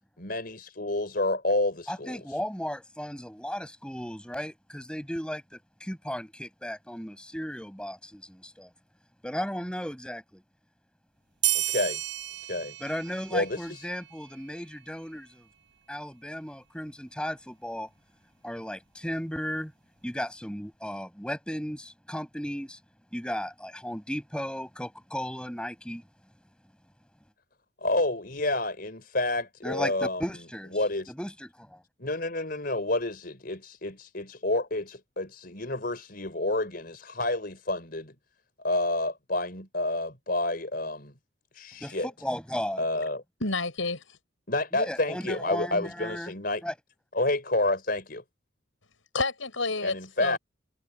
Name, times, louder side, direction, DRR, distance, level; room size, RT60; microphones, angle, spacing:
voice 1, 0.2-2.2 11.5-12.0 12.5-12.7 13.3-13.9 27.8-30.2 30.7-31.1 32.0-38.1 38.6-41.1 41.5-42.1 42.8-43.2 44.5-46.6 47.1-48.2 49.8-50.4, left 2 dB, 50° left, 4.8 m, -29 dB
voice 2, 1.9-8.7 9.2-10.4 12.8-15.5 15.9-17.9 18.4-19.7 20.0-22.8 23.1-26.0 29.6-30.8 31.2-31.8 41.8-42.0 42.2-42.8 44.7-46.3 46.6-46.7, equal, 5° left, 5.6 m, -35 dB
sound 1, 11.4-14.5, right 15 dB, 65° right, 6.0 m, -32 dB
voice 3, 43.4-44.2 49.1-50.4, left 3 dB, 85° left, 7.1 m, -29 dB
head